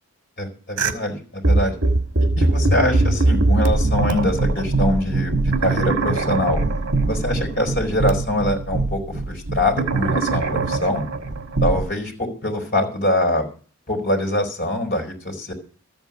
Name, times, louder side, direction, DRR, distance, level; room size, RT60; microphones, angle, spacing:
voice 1, 0.4-1.7 2.2-6.6 7.1-11.0 11.6-13.5 13.9-15.5, left 1 dB, 45° left, 0 dB, 4.1 m, -24 dB
sound 1, 0.8-0.9 1.4-11.8, right 2 dB, 90° right, 1.5 m, -21 dB
13.5 x 7.9 x 7.0 m, 0.42 s
head